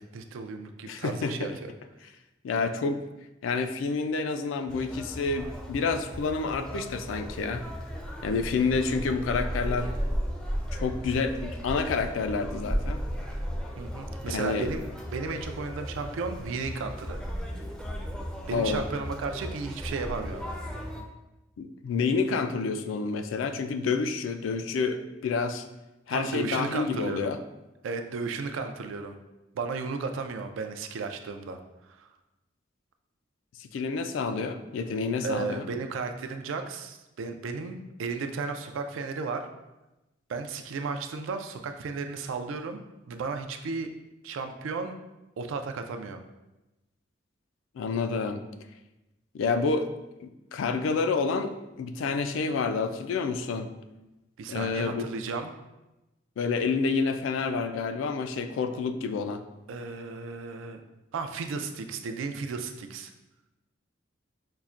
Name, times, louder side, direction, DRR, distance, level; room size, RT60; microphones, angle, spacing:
voice 1, 0.0-1.7 13.8-14.9 15.1-17.2 18.5-20.4 26.1-27.3 27.8-29.2 29.5-31.6 31.9-32.1 35.2-39.5 40.3-42.8 43.1-43.9 44.2-44.9 45.4-46.2 54.4-55.5 59.7-60.8 61.1-63.1, right 4 dB, 90° right, 7 dB, 0.4 m, -34 dB
voice 2, 0.9-1.5 2.4-3.0 3.4-7.6 8.2-9.9 10.7-13.0 14.3-14.7 18.5-18.8 21.6-25.6 26.1-27.4 33.6-35.7 47.8-48.4 49.3-49.9 50.2-53.7 54.5-55.0 56.4-59.4, left 4 dB, 85° left, 8 dB, 0.3 m, -29 dB
Conversation, 4.7-21.0, equal, 5° left, 0.4 m, -35 dB
5.5 x 2.1 x 2.4 m, 0.99 s
head